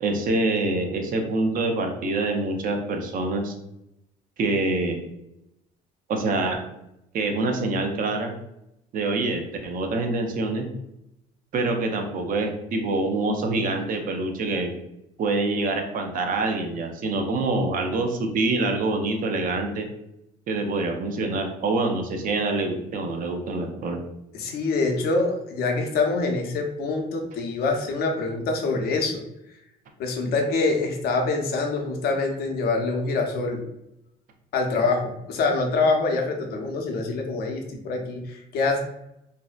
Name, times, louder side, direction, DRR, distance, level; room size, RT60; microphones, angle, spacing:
voice 1, 0.0-3.5 4.4-5.0 6.1-6.6 7.1-8.3 8.9-10.7 11.5-14.7 15.2-19.9 20.5-24.0, right 2 dB, 55° right, 3 dB, 0.5 m, -25 dB
voice 2, 24.3-29.2 30.0-33.6 34.5-38.8, left 3 dB, 70° left, 3 dB, 0.6 m, -25 dB
2.6 x 2.1 x 2.3 m, 0.83 s
cardioid pair, 110°, 17 cm